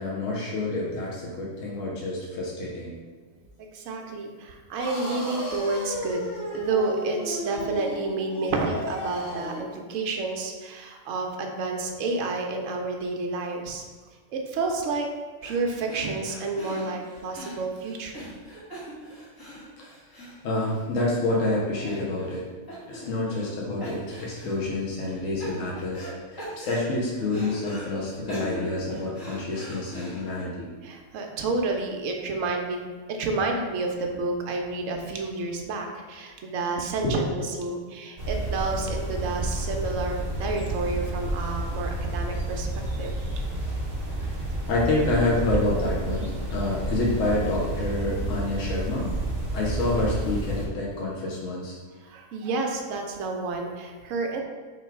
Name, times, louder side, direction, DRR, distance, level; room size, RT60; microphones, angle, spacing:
voice 1, 0.0-2.9 20.4-22.4 22.9-30.7 37.0-37.4 44.7-49.1 49.5-51.8, left 2 dB, 70° left, -4 dB, 1.1 m, -28 dB
voice 2, 3.7-6.2 6.5-13.8 14.3-15.1 15.4-18.3 30.8-37.3 37.6-42.7 43.0-43.1 52.0-54.4, right 3 dB, 70° right, 2 dB, 1.0 m, -30 dB
sound 1, 4.8-9.7, left 1 dB, 40° left, 0.8 m, -35 dB
sound 2, 15.4-15.6 15.9-21.1 21.4-21.5 21.8-22.4 22.7-23.5 23.8-24.6 25.0-26.1 26.4-27.9 28.3-30.4, equal, 15° left, 1.2 m, -41 dB
sound 3, 38.2-50.7, right 1 dB, 50° right, 1.1 m, -30 dB
3.9 x 3.0 x 4.4 m, 1.4 s
omnidirectional pair, 1.4 m